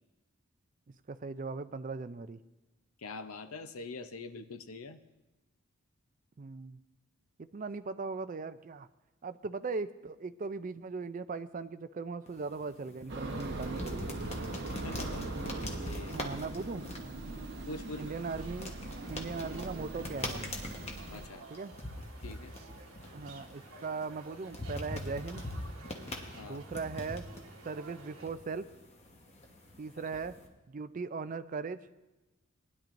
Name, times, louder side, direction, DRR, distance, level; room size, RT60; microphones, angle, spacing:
voice 1, 0.9-2.4 6.4-6.8 7.4-8.9 9.2-14.1 16.1-16.9 18.0-18.8 19.1-20.5 21.5-21.7 23.1-25.5 26.4-27.3 27.6-28.7 29.8-30.4 30.7-31.9, right 4 dB, 35° right, 12 dB, 0.4 m, -39 dB
voice 2, 3.0-5.0 14.7-16.2 17.6-18.1 21.1-21.5 22.2-22.5 26.3-26.6, left 3 dB, 85° left, 9 dB, 0.7 m, -44 dB
sound 1, 12.3-30.5, left 1 dB, 30° left, 1.1 m, -44 dB
sound 2, 13.1-21.3, right 2 dB, 50° right, 1.0 m, -41 dB
sound 3, 18.1-28.3, right 3 dB, 80° right, 1.2 m, -53 dB
19.0 x 10.5 x 2.6 m, 1.1 s
head